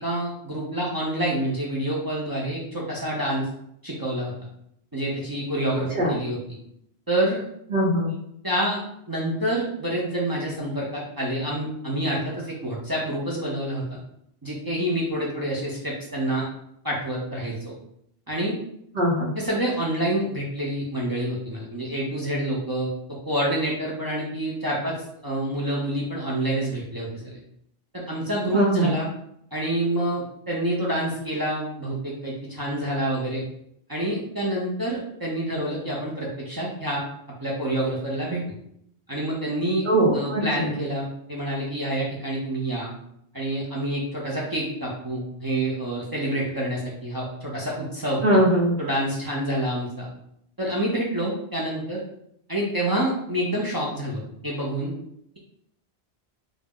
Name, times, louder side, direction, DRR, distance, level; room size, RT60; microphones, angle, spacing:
voice 1, 0.0-3.5 3.8-4.3 4.9-6.4 7.1-7.4 8.4-8.8 9.1-14.0 14.4-16.5 16.8-17.7 18.3-18.6 19.4-25.0 25.2-27.4 27.9-29.1 29.5-33.4 33.9-37.0 37.4-38.4 39.1-39.9 40.1-42.9 43.3-48.2 48.8-50.1 50.6-52.0 52.5-54.9, right 1 dB, 35° right, -5 dB, 0.3 m, -27 dB
voice 2, 7.7-8.1 19.0-19.3 28.5-28.9 39.9-40.6 48.2-48.8, right 1 dB, 65° right, -7 dB, 0.8 m, -21 dB
2.4 x 2.0 x 3.5 m, 0.73 s
omnidirectional pair, 1.1 m